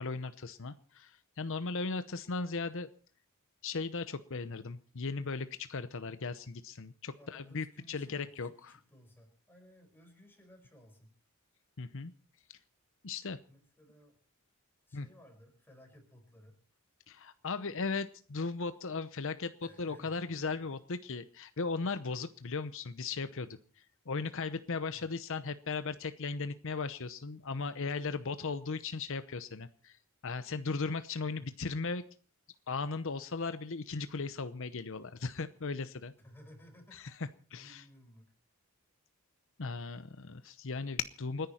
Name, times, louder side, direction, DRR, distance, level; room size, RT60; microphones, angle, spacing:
voice 1, 0.0-2.9 3.6-8.7 11.8-12.1 13.0-13.4 14.9-15.1 17.1-19.5 19.8-23.6 24.1-30.0 30.2-32.0 32.7-36.1 36.9-37.0 37.5-37.8 39.6-41.5, left 4 dB, 65° left, 12 dB, 0.8 m, -37 dB
voice 2, 7.2-11.2 13.5-14.2 14.9-16.6 19.6-20.6 24.9-25.1 31.4-31.5 36.2-37.3 37.6-38.3, equal, 10° left, 3 dB, 5.0 m, -58 dB
29.0 x 10.5 x 4.4 m, 0.41 s
head